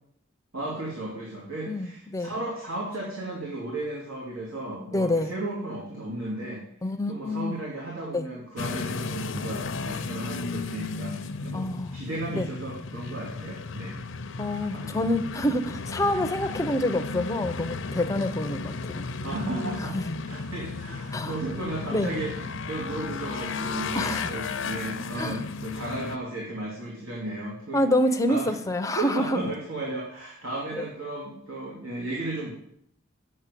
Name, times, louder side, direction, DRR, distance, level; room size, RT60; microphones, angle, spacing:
voice 1, 0.5-6.6 7.1-14.0 14.7-14.9 19.2-20.0 20.2-27.8 28.3-28.5 28.9-32.5, right 1 dB, 80° right, -4 dB, 2.6 m, -34 dB
voice 2, 1.7-2.3 4.9-5.3 6.8-7.6 8.1-8.3 11.5-12.0 12.3-12.5 14.4-19.0 19.9-20.2 21.1-21.3 21.9-22.1 23.9-24.3 25.2-25.4 27.7-29.4, left 1 dB, 15° left, 8 dB, 0.6 m, -27 dB
sound 1, 8.6-26.2, left 4 dB, 65° left, 0.6 m, -34 dB
8.8 x 6.5 x 8.3 m, 0.72 s
head